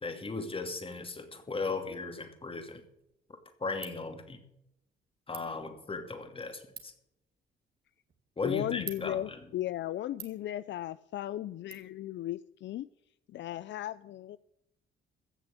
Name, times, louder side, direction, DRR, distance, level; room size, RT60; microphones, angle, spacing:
voice 1, 0.0-2.8 3.6-4.4 5.3-6.9 8.4-9.5, left 3 dB, 25° left, 7 dB, 2.6 m, -37 dB
Ratchet pawl, 2.7-11.7, right 7 dB, 55° right, 2.5 m, -53 dB
voice 2, 8.4-12.9 13.3-14.4, left 13 dB, 65° left, 16 dB, 0.5 m, -36 dB
16.0 x 6.8 x 8.3 m, 0.81 s
cardioid pair, 90°, 20 cm